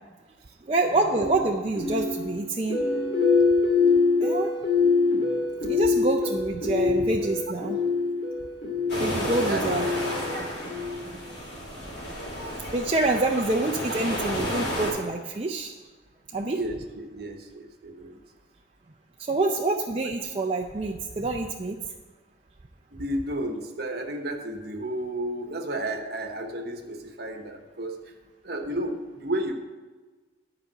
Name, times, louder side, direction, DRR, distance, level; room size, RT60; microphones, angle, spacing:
voice 1, 0.6-2.8 4.2-4.5 5.7-7.8 9.0-9.9 11.1-11.2 12.7-15.7 16.3-16.6 19.2-21.8, right 2 dB, 30° right, 1 dB, 0.5 m, -27 dB
sound 1, 1.1-11.2, left 4 dB, 45° left, 2.6 m, -25 dB
sound 2, 8.9-14.9, equal, 65° left, 3.4 m, -32 dB
voice 2, 9.3-9.7 16.5-18.2 22.9-28.1 28.4-29.5, right 1 dB, 55° right, 4 dB, 1.1 m, -32 dB
11.0 x 5.0 x 7.6 m, 1.3 s
head